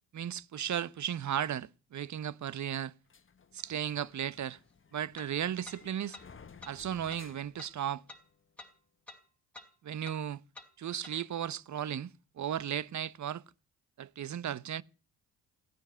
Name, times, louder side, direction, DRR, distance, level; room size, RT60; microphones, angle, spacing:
voice 1, 0.1-2.9 3.5-4.6 4.9-6.2 6.7-8.0 9.8-10.4 10.8-12.1 12.4-13.4 14.0-14.8, right 10 dB, 50° right, 1.0 m, -35 dB
sound 1, 3.1-8.4, left 5 dB, 30° left, 1.6 m, -56 dB
sound 2, 3.6-3.7 5.2-5.3 5.7-5.8 6.1-6.3 6.6-6.8 7.1-7.2 7.6-7.7 8.1-8.2 8.6-8.7 9.1-9.2 9.5-9.7 10.0-10.2 10.5-10.7 11.0-11.2, left 2 dB, 5° left, 4.9 m, -49 dB
17.5 x 9.7 x 8.0 m
supercardioid pair, 55°, 38 cm